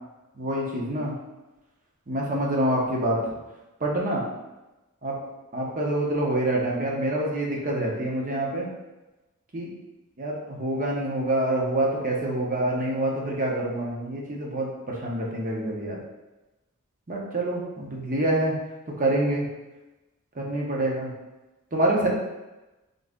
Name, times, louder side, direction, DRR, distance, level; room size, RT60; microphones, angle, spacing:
voice 1, 0.4-1.1 2.1-3.3 3.8-4.2 5.0-5.2 5.5-8.7 9.5-9.7 10.2-16.0 17.1-18.6 19.0-19.5 20.3-21.1 21.7-22.1, right 1 dB, 40° right, -2 dB, 0.9 m, -26 dB
4.0 x 3.0 x 3.6 m, 1.1 s
head